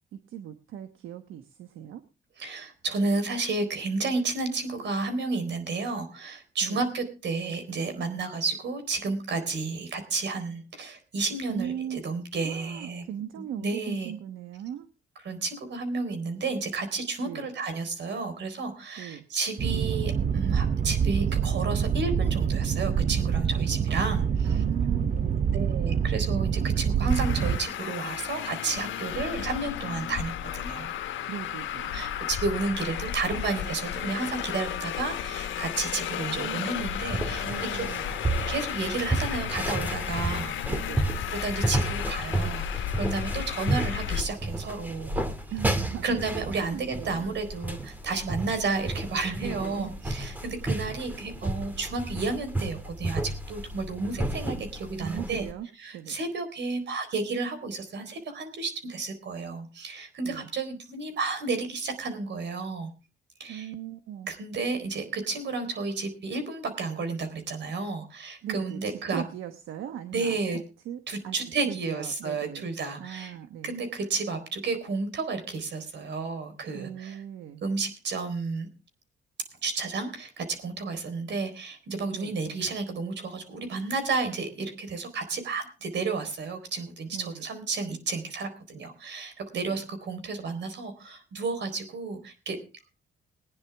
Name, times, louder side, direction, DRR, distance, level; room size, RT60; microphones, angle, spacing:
voice 1, 0.1-2.0 6.6-6.8 11.5-12.0 12.4-14.9 17.2-17.5 19.0-19.2 24.4-25.9 31.3-32.1 36.4-36.6 37.2-38.2 40.7-41.1 45.5-46.0 46.6-47.3 49.4-49.9 55.0-55.7 55.9-56.2 60.2-60.5 63.5-64.3 68.4-71.4 71.7-72.7 73.0-73.7 76.7-77.6 82.1-82.3 87.1-87.5 89.5-89.8, right 10 dB, 80° right, 9 dB, 1.2 m, -39 dB
voice 2, 2.4-13.0 13.4-14.1 15.2-24.6 25.5-30.9 31.9-37.5 37.7-37.9 38.5-40.8 41.3-45.2 46.0-55.4 55.8-62.9 63.4-63.7 64.3-69.2 70.1-70.6 71.1-73.3 73.6-77.2 77.6-78.7 79.6-92.6, right 3 dB, 65° right, 9 dB, 4.0 m, -32 dB
Boat Water vehicle, 19.6-27.6, right 7 dB, 40° right, 0.9 m, -26 dB
Traffic noise roadway noise, 27.1-44.2, left 10 dB, 75° left, 1.2 m, -33 dB
sound 1, 36.8-55.5, right 2 dB, 10° right, 2.1 m, -32 dB
21.0 x 10.0 x 3.4 m, 0.31 s
cardioid pair, 90°, 20 cm